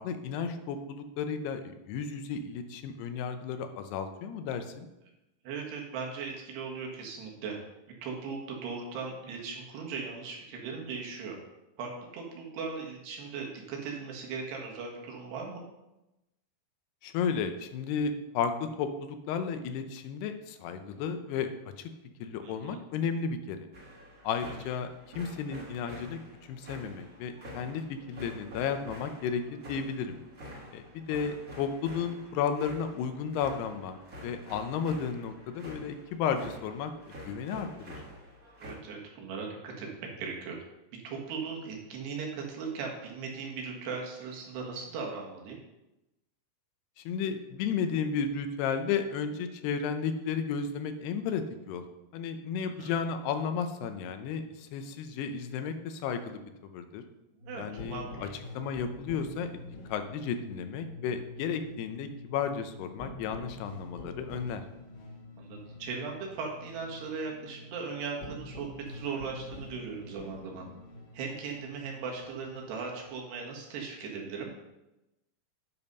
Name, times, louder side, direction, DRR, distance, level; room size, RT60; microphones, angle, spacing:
voice 1, 0.0-4.9 17.0-21.5 21.8-21.9 22.2-23.6 24.2-24.9 25.2-26.2 26.5-30.2 30.7-37.7 47.0-51.8 52.1-56.4 56.7-57.0 57.6-58.3 58.5-59.5 59.9-64.6, left 6 dB, 90° left, 8 dB, 2.8 m, -33 dB
voice 2, 5.5-7.6 8.0-11.4 11.8-15.6 22.4-22.8 31.1-31.2 38.6-40.6 41.0-45.6 52.6-53.0 57.4-58.3 65.4-70.6 71.1-74.5, right 5 dB, 90° right, -1 dB, 3.7 m, -38 dB
sound 1, 23.7-38.7, equal, 30° right, 1.5 m, -47 dB
sound 2, 57.4-73.1, left 2 dB, 75° left, 3.9 m, -47 dB
9.4 x 5.4 x 5.4 m, 0.96 s
omnidirectional pair, 4.6 m